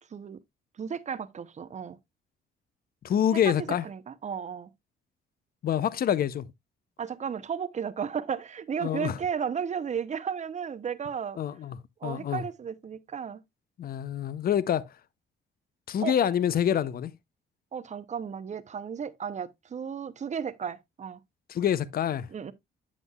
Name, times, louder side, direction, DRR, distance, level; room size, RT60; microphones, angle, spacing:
voice 1, 0.8-2.0 3.3-3.5 3.8-4.7 7.0-11.4 12.0-13.4 16.0-16.1 17.7-21.2 22.3-22.5, right 7 dB, 35° right, 0.7 m, -34 dB
voice 2, 3.0-3.8 5.6-6.5 8.8-9.1 11.4-11.8 12.0-12.4 13.8-14.9 15.9-17.1 21.5-22.3, left 9 dB, 50° left, 0.5 m, -26 dB
8.0 x 7.3 x 2.3 m
cardioid pair, 90°, 20 cm